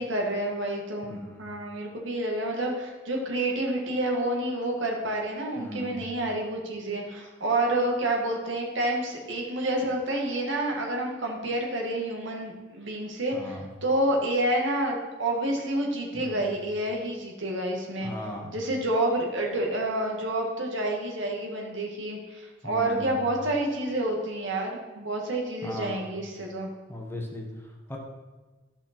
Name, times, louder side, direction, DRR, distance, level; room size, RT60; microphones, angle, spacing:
voice 1, 0.0-18.1 18.5-26.7, right 1 dB, 70° right, 0 dB, 2.0 m, -29 dB
voice 2, 1.0-1.4 5.6-6.0 13.3-13.7 16.1-16.5 18.0-18.5 22.6-23.2 25.6-26.1 26.9-28.0, left 1 dB, 10° left, 0 dB, 1.4 m, -38 dB
14.5 x 5.8 x 4.4 m, 1.2 s
head